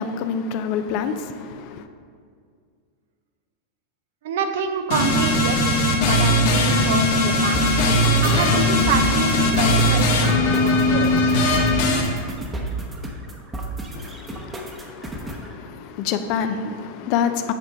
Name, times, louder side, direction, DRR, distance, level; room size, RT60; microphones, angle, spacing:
voice 1, 0.0-1.8 13.9-17.5, left 7 dB, 55° left, 0.5 m, -27 dB
voice 2, 4.2-7.7 8.2-11.3, right 6 dB, 75° right, 0.7 m, -27 dB
sound 1, 4.9-12.0, left 1 dB, 70° left, 1.5 m, -19 dB
sound 2, 7.5-15.5, right 2 dB, 15° right, 1.0 m, -32 dB
8.2 x 4.5 x 4.9 m
hypercardioid pair, 110°, 0 cm